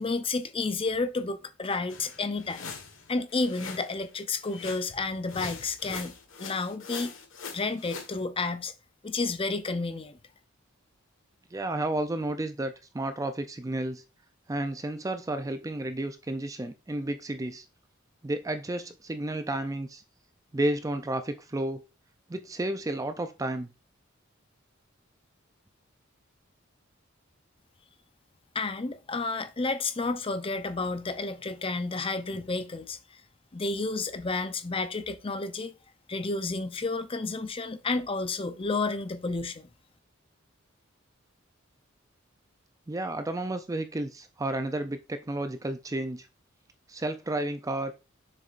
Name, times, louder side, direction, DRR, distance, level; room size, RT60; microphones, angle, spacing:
voice 1, 0.0-2.7 3.1-6.1 6.4-7.1 7.5-8.7 9.0-10.2 28.5-33.0 33.5-35.7 36.1-39.7, left 3 dB, 25° left, 0.6 m, -31 dB
sound 1, 1.9-4.0 4.5-5.0 5.3-8.1, left 5 dB, 65° left, 1.5 m, -42 dB
voice 2, 11.5-14.0 14.5-17.7 18.2-20.0 20.5-21.8 22.3-23.7 42.9-46.3 46.9-47.9, right 1 dB, 15° right, 0.4 m, -32 dB
7.1 x 6.7 x 2.5 m
head